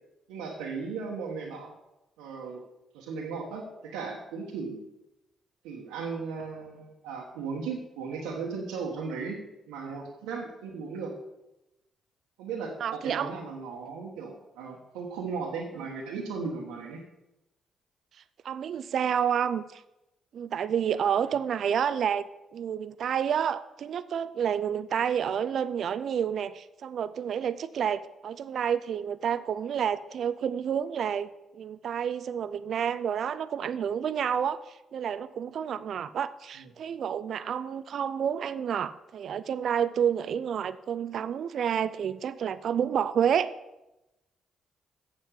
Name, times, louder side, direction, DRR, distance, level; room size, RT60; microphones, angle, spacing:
voice 1, 0.3-1.7 2.2-2.6 2.9-4.8 5.6-9.4 9.7-11.1 12.4-17.0 21.2-21.3 36.6-36.7, right 5 dB, 90° right, -3 dB, 1.3 m, -36 dB
voice 2, 12.8-13.3 18.4-19.8 20.3-31.3 31.5-34.6 34.9-43.5, right 8 dB, 65° right, 14 dB, 0.4 m, -29 dB
7.6 x 7.1 x 7.4 m, 0.95 s
supercardioid pair, 55°, 0 cm